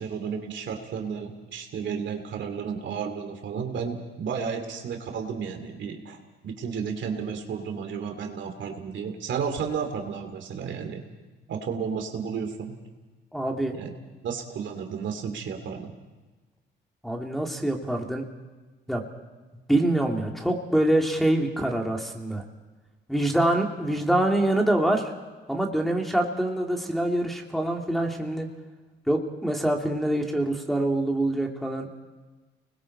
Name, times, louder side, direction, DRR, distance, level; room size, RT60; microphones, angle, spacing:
voice 1, 0.0-6.2 6.4-11.0 11.5-12.7 13.7-13.9 14.2-15.9, right 6 dB, 70° right, 5 dB, 2.6 m, -32 dB
voice 2, 13.3-13.7 17.0-18.2 18.9-19.0 19.7-22.4 23.1-25.1 25.5-28.5 29.1-32.0, right 1 dB, ahead, 0 dB, 2.8 m, -25 dB
30.0 x 21.0 x 4.3 m, 1.2 s
cardioid pair, 90°, 20 cm